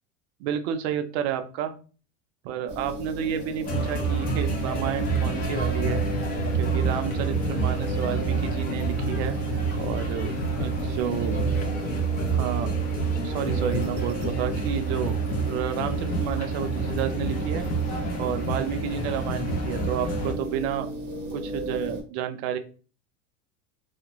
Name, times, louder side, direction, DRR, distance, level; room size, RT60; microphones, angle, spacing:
voice 1, 0.4-1.7 2.4-6.0 6.6-9.4 9.8-10.3 10.6-11.4 12.3-12.7 13.2-15.2 15.4-17.7 18.2-20.9 21.3-22.6, right 9 dB, 60° right, 8 dB, 0.5 m, -30 dB
sound 1, 2.7-22.0, right 1 dB, 30° right, 0.7 m, -35 dB
sound 2, 3.6-20.3, right 3 dB, 25° left, 0.5 m, -28 dB
2.4 x 2.1 x 2.9 m, 0.38 s
supercardioid pair, 130°, 37 cm